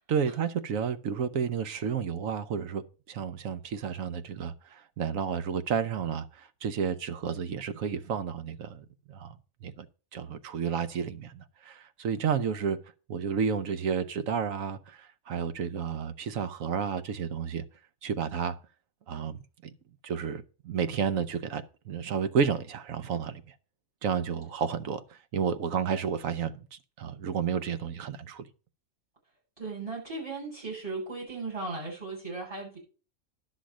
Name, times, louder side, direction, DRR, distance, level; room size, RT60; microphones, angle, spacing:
voice 1, 0.1-9.9 10.1-12.8 13.1-17.6 18.0-18.6 19.1-19.7 20.0-23.5 24.0-28.5, right 7 dB, 75° right, 1.1 m, -31 dB
voice 2, 29.6-32.8, right 3 dB, 25° right, 7.7 m, -36 dB
11.5 x 6.3 x 6.2 m
omnidirectional pair, 1.4 m